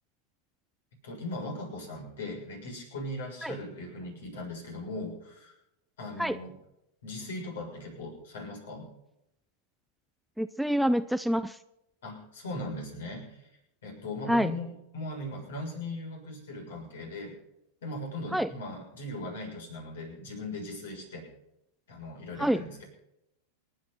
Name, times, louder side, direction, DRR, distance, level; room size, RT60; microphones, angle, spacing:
voice 1, 1.0-5.5 6.0-6.5 7.0-8.9 12.0-13.5 13.8-17.4 17.8-21.3 21.9-22.8, left 1 dB, 60° left, 2 dB, 6.9 m, -39 dB
voice 2, 10.4-11.6 14.3-14.5 18.3-18.5 22.4-22.6, equal, ahead, 13 dB, 0.5 m, -26 dB
28.5 x 9.9 x 4.2 m, 0.86 s
figure-of-eight pair, 90°, 0 cm